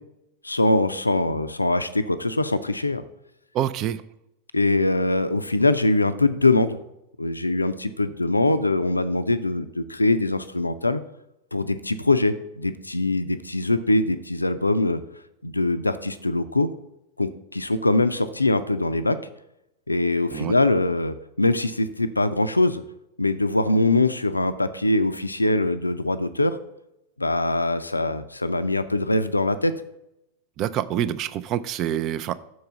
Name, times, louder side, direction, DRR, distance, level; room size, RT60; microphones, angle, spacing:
voice 1, 0.4-3.0 4.5-6.8 7.2-11.0 11.5-15.0 15.4-16.7 17.2-19.2 19.9-22.8 23.2-26.6 27.2-29.7, left 2 dB, 80° left, 11 dB, 0.4 m, -22 dB
voice 2, 3.5-4.0 20.3-20.5 30.6-32.4, right 11 dB, 35° right, 15 dB, 0.4 m, -26 dB
6.5 x 4.7 x 6.7 m, 0.86 s
figure-of-eight pair, 90°, 0 cm